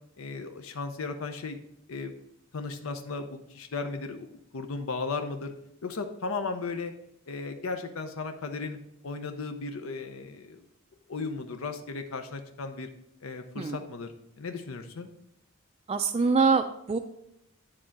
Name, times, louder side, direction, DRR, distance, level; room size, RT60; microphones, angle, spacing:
voice 1, 0.2-1.6 1.9-2.1 2.5-4.3 4.5-5.5 5.8-6.9 7.3-8.8 9.0-10.6 11.1-12.9 13.2-14.1 14.4-15.1, left 4 dB, 80° left, 6 dB, 0.6 m, -35 dB
voice 2, 15.9-17.0, right 4 dB, 30° right, 6 dB, 0.3 m, -24 dB
9.7 x 3.7 x 4.5 m, 0.76 s
head